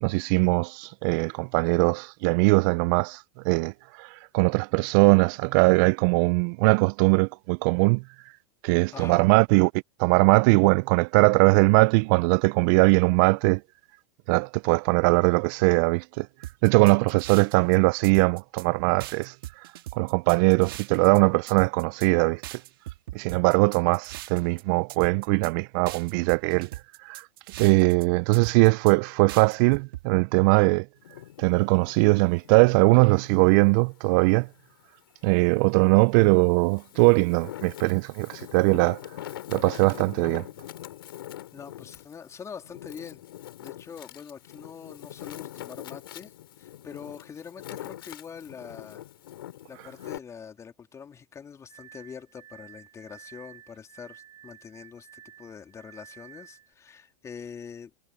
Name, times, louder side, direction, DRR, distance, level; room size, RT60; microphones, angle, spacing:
voice 1, 0.0-3.7 4.0-8.0 8.6-9.7 10.0-13.6 14.3-16.3 16.6-19.3 19.9-22.6 23.1-26.7 27.0-27.2 27.6-30.9 31.4-34.5 35.2-39.0 39.5-40.5, right 28 dB, 60° right, 0.5 m, -21 dB
voice 2, 8.9-9.3 41.5-43.2 43.6-49.0 49.7-57.9, left 7 dB, 25° left, 3.5 m, -44 dB
sound 1, 16.4-17.8 18.0-18.7 19.0-21.2 21.5-22.1 22.4-24.6 24.9-25.5 25.9-28.0 28.3-28.9 29.3-30.0, right 15 dB, 75° right, 2.3 m, -40 dB
Wind, 31.0-33.8 34.3-35.6 36.2-50.2, left 13 dB, 80° left, 5.7 m, -43 dB
Glass, 51.7-56.7, right 10 dB, 40° right, 5.3 m, -51 dB
hypercardioid pair, 105°, 12 cm